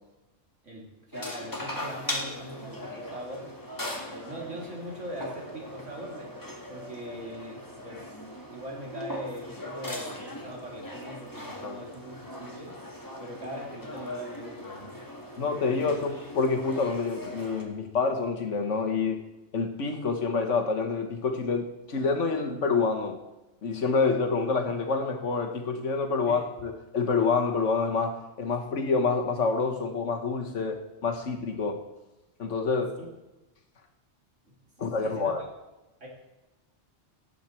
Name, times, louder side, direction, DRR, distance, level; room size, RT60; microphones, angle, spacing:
voice 1, 0.6-3.5 4.0-6.3 6.7-12.8 13.2-15.1 15.6-15.9 26.3-26.4 33.0-33.1 34.5-35.3 36.0-36.1, right 1 dB, 85° right, -2 dB, 3.3 m, -42 dB
sound 1, 1.1-17.6, left 1 dB, 15° left, 1.7 m, -39 dB
voice 2, 15.4-19.2 19.5-23.2 23.6-31.8 32.4-33.0 34.8-35.4, left 4 dB, 80° left, 4 dB, 1.7 m, -27 dB
18.0 x 8.2 x 4.5 m, 1.0 s
omnidirectional pair, 1.2 m